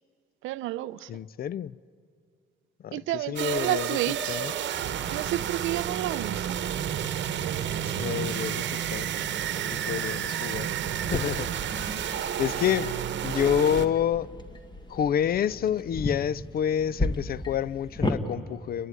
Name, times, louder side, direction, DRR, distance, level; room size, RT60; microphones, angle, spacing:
voice 1, 0.4-1.1 2.9-4.4 5.1-6.6 12.0-12.3, right 15 dB, 90° right, 0.5 m, -31 dB
voice 2, 1.1-1.8 2.8-4.0 4.3-4.5 7.9-9.1 9.7-12.9 13.2-14.3 14.9-18.9, left 9 dB, 50° left, 0.4 m, -29 dB
sound 1, 3.4-13.9, right 9 dB, 65° right, 1.0 m, -31 dB
sound 2, 11.0-18.2, left 2 dB, 20° left, 1.4 m, -34 dB
30.0 x 11.0 x 9.4 m
cardioid pair, 90°, 20 cm